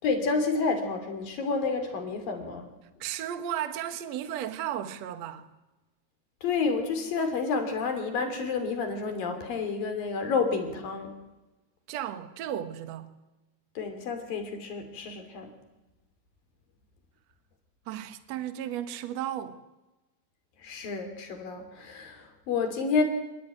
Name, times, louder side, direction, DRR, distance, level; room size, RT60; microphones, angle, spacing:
voice 1, 0.0-2.7 6.4-11.1 13.8-15.5 20.6-23.0, left 4 dB, 55° left, 4.3 m, -29 dB
voice 2, 3.0-5.5 11.9-13.1 17.9-19.6, right 11 dB, 60° right, 1.8 m, -34 dB
27.0 x 19.0 x 9.1 m
omnidirectional pair, 5.1 m